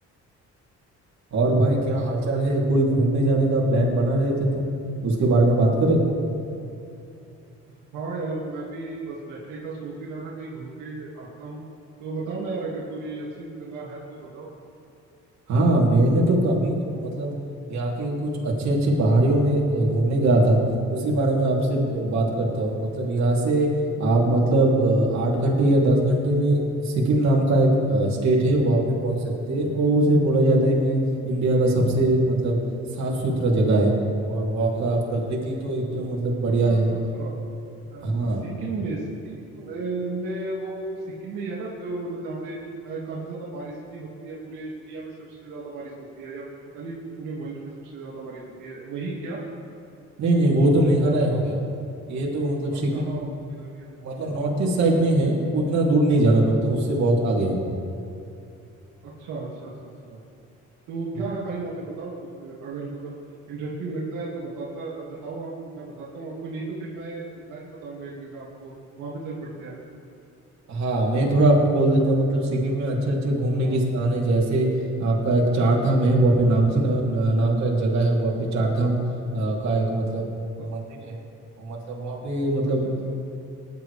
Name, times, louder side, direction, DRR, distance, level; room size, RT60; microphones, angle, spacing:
voice 1, 1.3-4.7 5.0-6.0 15.5-17.3 17.7-20.6 20.9-23.7 24.0-31.0 31.2-32.6 32.9-33.9 34.3-36.9 38.0-38.4 50.2-51.6 52.1-52.9 54.0-57.6 70.7-74.7 75.0-79.0 79.3-80.3 80.6-81.2 81.6-83.1, right 1 dB, 65° right, -3 dB, 3.1 m, -21 dB
voice 2, 7.9-11.6 12.0-14.5 22.5-22.6 36.7-36.8 37.1-37.3 37.9-42.6 42.8-46.4 46.7-49.4 52.7-53.9 57.0-57.1 59.0-59.7 60.1-60.2 60.9-63.2 63.5-68.7 69.0-69.8 73.6-73.8 80.6-80.7 82.8-83.1, right 3 dB, 85° right, -6 dB, 2.3 m, -34 dB
19.0 x 11.0 x 3.4 m, 2.7 s
cardioid pair, 90°, 30 cm